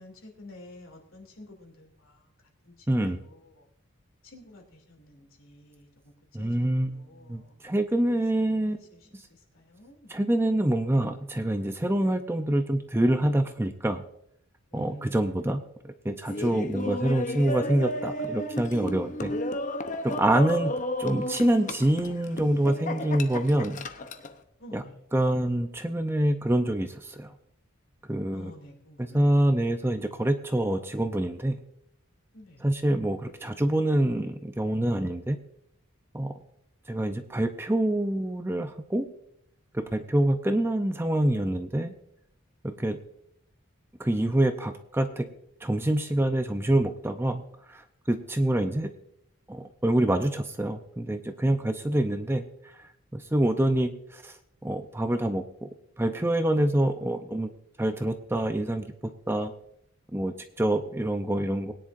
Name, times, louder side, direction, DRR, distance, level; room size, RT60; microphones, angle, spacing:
voice 1, 0.0-3.7 4.2-7.6 8.0-10.4 14.7-15.5 24.6-25.0 28.3-29.6 32.3-32.7, left 1 dB, 70° left, 2 dB, 2.8 m, -50 dB
voice 2, 2.9-3.2 6.3-7.0 7.3-8.8 10.1-14.0 14.7-19.3 20.0-20.7 21.0-23.8 24.7-24.8 25.1-27.3 28.1-28.5 29.0-31.6 32.6-35.4 36.1-36.3 36.9-39.1 39.7-41.9 42.6-43.0 44.0-45.3 45.6-48.9 49.5-52.4 53.1-54.4 54.6-55.7 56.0-57.5 57.8-58.9 59.3-59.5 60.1-61.7, right 1 dB, 10° right, 7 dB, 0.5 m, -26 dB
Laughter, 16.2-24.3, left 1 dB, 35° left, 0.7 m, -33 dB
21.0 x 10.0 x 2.6 m, 0.73 s
head